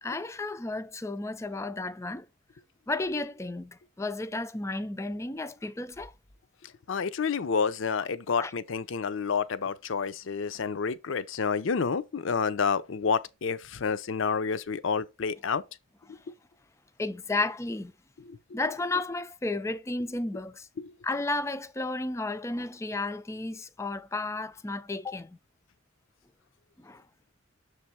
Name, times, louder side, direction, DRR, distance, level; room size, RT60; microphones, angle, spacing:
voice 1, 0.0-2.3 2.9-6.1 8.4-8.5 17.0-17.9 18.5-20.7 21.0-25.4 26.8-27.0, left 2 dB, 15° left, 0.4 m, -33 dB
voice 2, 6.9-15.6 18.3-18.6 20.8-20.9, left 5 dB, 65° left, 0.5 m, -29 dB
6.9 x 3.4 x 4.3 m
head